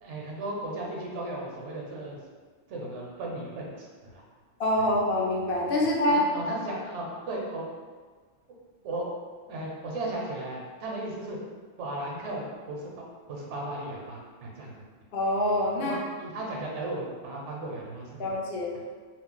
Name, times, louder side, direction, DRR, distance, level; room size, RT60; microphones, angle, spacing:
voice 1, 0.0-2.2 2.7-3.9 4.1-4.2 5.8-7.6 8.8-9.1 9.5-11.4 11.8-14.7 15.8-18.4, right 1 dB, 70° right, -2 dB, 1.0 m, -36 dB
voice 2, 4.6-6.3 15.1-16.0 18.2-18.8, left 1 dB, 60° left, -2 dB, 0.7 m, -25 dB
2.4 x 2.0 x 3.8 m, 1.5 s
omnidirectional pair, 1.3 m